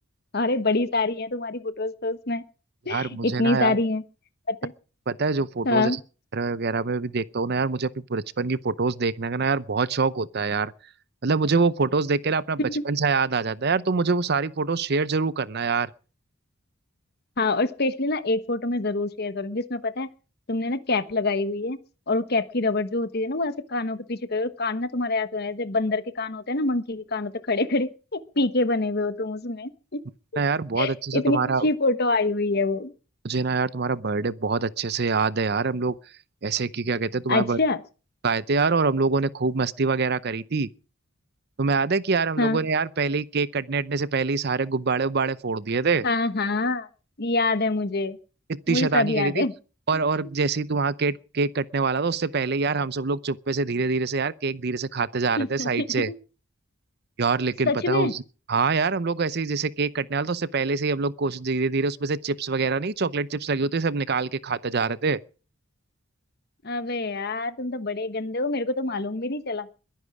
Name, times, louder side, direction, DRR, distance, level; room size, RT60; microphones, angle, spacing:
voice 1, 0.3-2.4 2.9-4.0 4.5-4.7 5.6-6.0 12.6-12.8 17.4-20.1 20.5-21.8 22.1-30.0 30.8-32.9 37.3-37.8 42.4-42.6 46.0-46.9 47.2-48.2 48.7-49.5 55.4-56.2 57.7-58.1 66.6-69.7, left 2 dB, 50° left, 1.2 m, -26 dB
voice 2, 2.9-3.8 5.1-5.9 6.3-10.7 11.2-15.9 30.4-31.7 33.2-35.9 36.4-37.6 38.2-40.7 41.6-46.0 48.5-49.4 49.9-56.1 57.2-58.2 58.5-65.2, right 4 dB, 55° right, 0.7 m, -25 dB
22.0 x 10.5 x 4.9 m
head